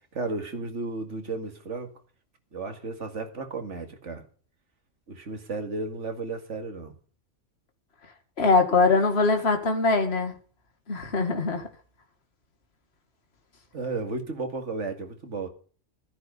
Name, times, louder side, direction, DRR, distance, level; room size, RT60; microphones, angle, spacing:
voice 1, 0.1-1.9 2.5-4.2 5.1-6.9 13.7-15.5, right 3 dB, 70° right, 2.3 m, -33 dB
voice 2, 8.4-10.3 10.9-11.7, left 3 dB, 55° left, 2.2 m, -22 dB
13.5 x 10.0 x 5.4 m
omnidirectional pair, 1.3 m